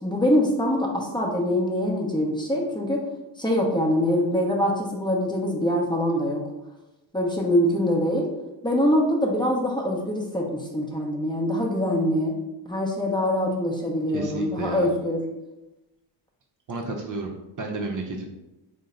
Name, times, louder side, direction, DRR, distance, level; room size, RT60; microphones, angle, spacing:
voice 1, 0.0-3.0 3.4-6.4 7.1-8.3 8.6-12.3 12.7-15.2, left 1 dB, 10° left, -1 dB, 0.8 m, -24 dB
voice 2, 14.1-14.9 16.7-18.3, right 2 dB, 40° right, 0 dB, 0.7 m, -31 dB
3.7 x 2.2 x 3.8 m, 0.99 s
supercardioid pair, 65°, 49 cm